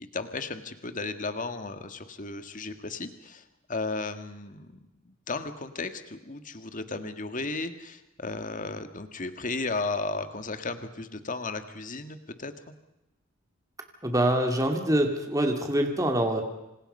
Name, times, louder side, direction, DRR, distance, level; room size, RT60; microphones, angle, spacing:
voice 1, 0.0-3.4 3.7-4.8 5.1-12.7, left 3 dB, 40° left, 9 dB, 1.8 m, -34 dB
voice 2, 14.0-16.5, right 1 dB, 15° right, 4 dB, 2.4 m, -25 dB
27.0 x 27.0 x 5.5 m, 0.93 s
head